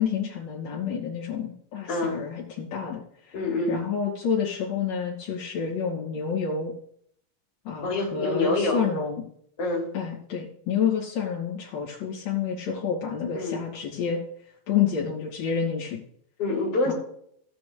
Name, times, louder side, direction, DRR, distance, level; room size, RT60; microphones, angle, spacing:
voice 1, 0.0-3.0 3.7-6.7 7.7-9.2 9.9-14.2 14.7-16.0 16.9-17.0, left 7 dB, 70° left, -6 dB, 4.2 m, -29 dB
voice 2, 1.9-2.2 3.3-3.8 7.8-8.9 9.6-9.9 13.3-13.6 16.4-16.9, left 2 dB, 45° left, -3 dB, 4.1 m, -26 dB
16.5 x 9.2 x 3.4 m, 0.67 s
omnidirectional pair, 4.1 m